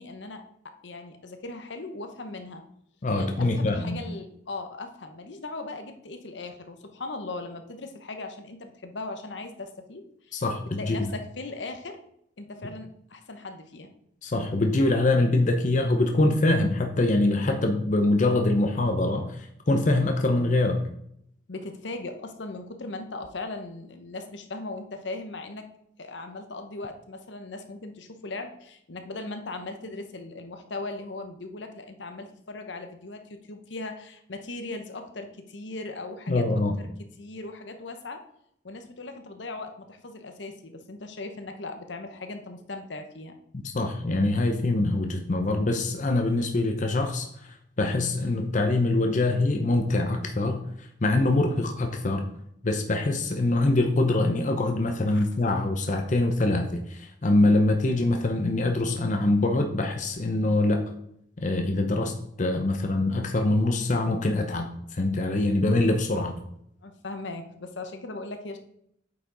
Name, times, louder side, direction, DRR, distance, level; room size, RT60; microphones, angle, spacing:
voice 1, 0.0-2.6 3.1-10.4 10.8-12.0 12.4-13.9 21.5-25.7 26.0-36.9 37.2-38.2 38.6-43.3 55.1-55.3 66.8-68.6, left 2 dB, 70° left, 6 dB, 0.9 m, -38 dB
voice 2, 3.0-4.0 10.3-11.0 14.2-20.8 36.3-36.8 43.7-52.3 52.6-60.8 61.4-62.1 62.4-66.4, left 2 dB, 40° left, 4 dB, 0.7 m, -24 dB
8.4 x 5.0 x 3.9 m, 0.72 s
head